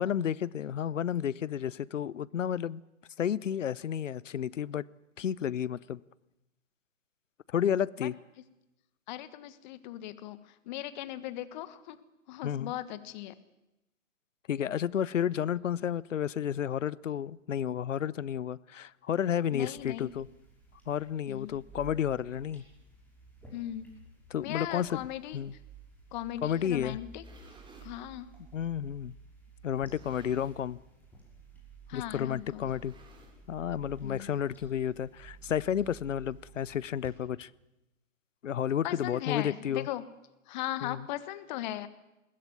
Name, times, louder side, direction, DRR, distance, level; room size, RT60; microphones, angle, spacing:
voice 1, 0.0-2.8 3.2-4.9 5.2-6.0 7.5-8.2 12.4-12.7 14.5-20.3 20.9-22.6 24.3-25.0 25.3-25.5 26.4-27.0 28.5-29.1 29.6-30.8 31.9-32.9 33.5-37.5 38.4-39.9 40.8-41.1, left 9 dB, 70° left, 0.8 m, -31 dB
voice 2, 9.1-12.0 12.3-13.3 19.5-20.1 21.3-21.6 23.5-23.9 24.4-25.4 26.1-27.2 27.8-28.3 31.9-32.7 34.0-34.3 38.8-40.1 40.5-41.9, left 13 dB, 35° left, 1.4 m, -38 dB
sound 1, 19.8-37.1, right 2 dB, 5° left, 5.8 m, -53 dB
sound 2, 27.2-28.0 28.7-28.8 29.7-30.8 31.1-31.4 31.6-31.7 32.6-33.7, right 4 dB, 10° right, 3.3 m, -57 dB
21.5 x 15.5 x 9.5 m
figure-of-eight pair, 120°, 40 cm